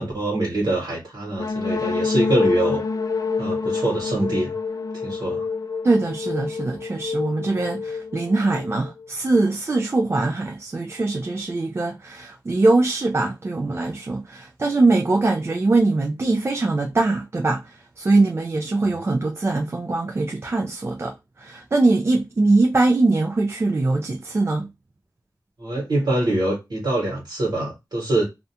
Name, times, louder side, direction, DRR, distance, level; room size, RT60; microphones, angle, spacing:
voice 1, 0.0-2.8 3.4-4.5 5.0-5.5 25.6-28.2, right 1 dB, 75° right, 1.1 m, -24 dB
sound 1, 1.4-9.1, left 4 dB, 55° left, 0.3 m, -27 dB
voice 2, 5.8-24.7, right 2 dB, 35° right, 0.3 m, -22 dB
2.4 x 2.1 x 2.7 m
wide cardioid pair, 85°, 7 cm